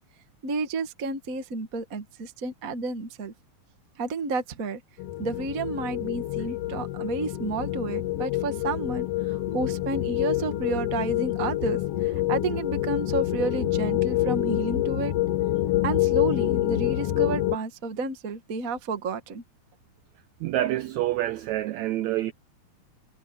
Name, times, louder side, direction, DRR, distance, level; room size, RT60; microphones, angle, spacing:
voice 1, 0.4-3.3 4.0-4.8 5.2-15.1 15.8-19.4, right 3 dB, 40° right, 1.3 m, -31 dB
sound 1, 5.0-17.6, left 14 dB, 65° left, 1.6 m, -27 dB
voice 2, 20.4-22.3, right 14 dB, 75° right, 1.8 m, -27 dB
omnidirectional pair, 3.6 m